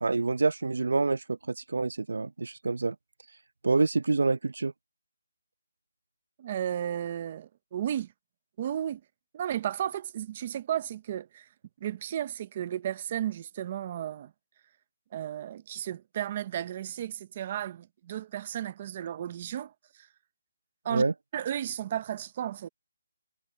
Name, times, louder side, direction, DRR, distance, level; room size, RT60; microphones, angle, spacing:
voice 1, 0.0-3.0 3.6-4.7 20.9-21.1, right 3 dB, 65° right, 0.7 m, -27 dB
voice 2, 6.4-8.1 8.6-9.0 9.3-11.5 11.8-14.3 15.1-20.1 20.8-21.0 21.3-22.7, right 10 dB, 20° right, 0.7 m, -34 dB
hypercardioid pair, 180°, 0 cm